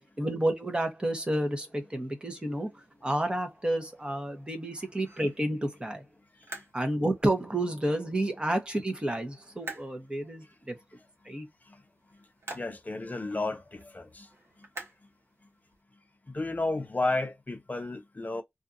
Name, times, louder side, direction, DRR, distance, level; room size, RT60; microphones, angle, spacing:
voice 1, 0.2-6.1 6.7-10.8 11.2-11.5, right 1 dB, 20° right, 0.9 m, -30 dB
sound 1, 2.6-15.8, right 2 dB, 65° right, 1.1 m, -50 dB
voice 2, 12.5-14.3 16.3-18.4, left 2 dB, 35° left, 0.6 m, -32 dB
2.6 x 2.4 x 2.5 m
wide cardioid pair, 90°, 5 cm